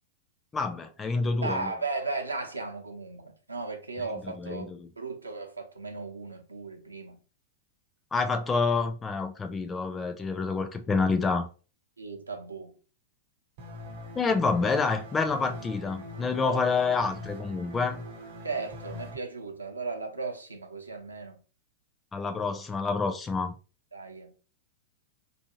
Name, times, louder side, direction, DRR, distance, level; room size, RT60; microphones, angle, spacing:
voice 1, 0.5-1.7 4.1-4.9 8.1-11.5 14.1-18.0 22.1-23.5, left 4 dB, 15° left, 0.4 m, -28 dB
voice 2, 1.4-4.7 5.0-7.2 12.0-12.7 16.4-16.6 16.9-17.0 18.4-21.4 23.9-24.3, right 3 dB, 85° right, 0.6 m, -36 dB
sound 1, 13.6-19.2, left 1 dB, 50° right, 0.8 m, -43 dB
2.5 x 2.5 x 2.8 m
figure-of-eight pair, 95°, 0 cm